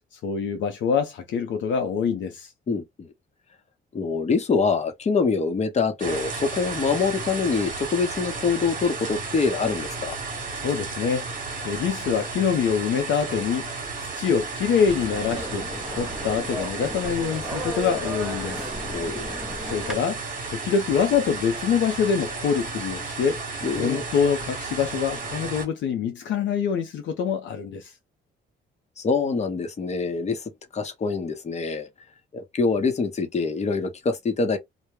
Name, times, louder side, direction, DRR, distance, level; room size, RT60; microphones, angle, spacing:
voice 1, 0.2-2.5 10.5-11.3 11.6-13.7 14.1-15.7 16.0-18.7 19.6-23.4 23.8-27.9, left 6 dB, 70° left, 0.5 m, -25 dB
voice 2, 2.7-3.1 3.9-10.2 18.9-19.2 23.6-24.0 29.0-31.9 32.3-34.6, left 4 dB, 35° left, 0.7 m, -25 dB
sound 1, 6.0-25.7, right 4 dB, 40° right, 1.1 m, -33 dB
sound 2, 14.9-19.9, left 1 dB, ahead, 0.7 m, -34 dB
2.1 x 2.0 x 3.0 m
cardioid pair, 90°, 20 cm